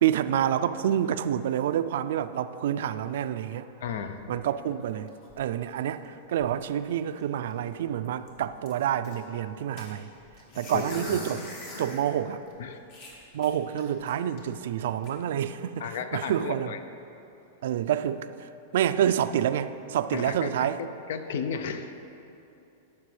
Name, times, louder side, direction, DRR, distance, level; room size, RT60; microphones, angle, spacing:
voice 1, 0.0-3.7 4.3-10.1 10.6-11.4 11.8-12.4 13.3-16.7 17.6-20.8, right 10 dB, 70° right, 11 dB, 0.3 m, -28 dB
voice 2, 3.8-4.2 10.7-11.0 12.6-12.8 15.8-16.8 20.1-20.5 20.8-21.9, left 6 dB, 70° left, 9 dB, 0.5 m, -33 dB
sound 1, 4.7-6.1 6.4-6.9 7.2-7.3 7.5-7.7 8.0-9.2 9.8-12.1 12.5-12.6 12.9-14.4 14.8-15.1, left 2 dB, 55° left, 1.7 m, -42 dB
13.0 x 6.0 x 3.3 m, 2.8 s
hypercardioid pair, 135°, 0 cm